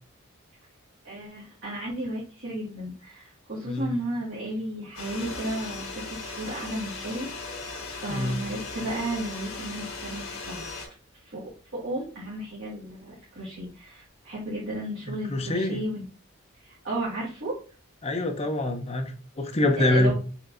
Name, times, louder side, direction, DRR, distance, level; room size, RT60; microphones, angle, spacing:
voice 1, 1.0-10.6 11.2-16.1 16.5-17.5 19.8-20.1, right 1 dB, 60° right, 1.4 m, -34 dB
voice 2, 3.7-4.0 8.1-8.4 15.1-15.8 18.0-20.1, left 2 dB, 30° left, 0.6 m, -26 dB
sound 1, 4.9-10.9, left 3 dB, 75° left, 1.5 m, -37 dB
4.4 x 3.2 x 2.6 m
head